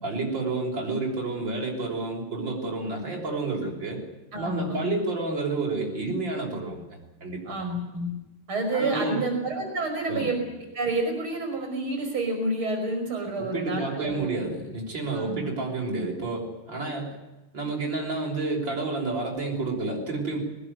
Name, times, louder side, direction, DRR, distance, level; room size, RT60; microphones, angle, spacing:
voice 1, 0.0-4.0 4.4-6.9 7.2-7.4 8.7-9.2 10.1-10.3 13.4-17.1 17.5-20.4, right 3 dB, 60° right, -1 dB, 6.6 m, -30 dB
voice 2, 4.3-4.9 7.5-8.1 8.5-10.4 10.7-14.4 15.1-15.4, right 2 dB, 75° right, 3 dB, 6.3 m, -29 dB
21.0 x 20.5 x 9.6 m, 1.0 s
omnidirectional pair, 2.3 m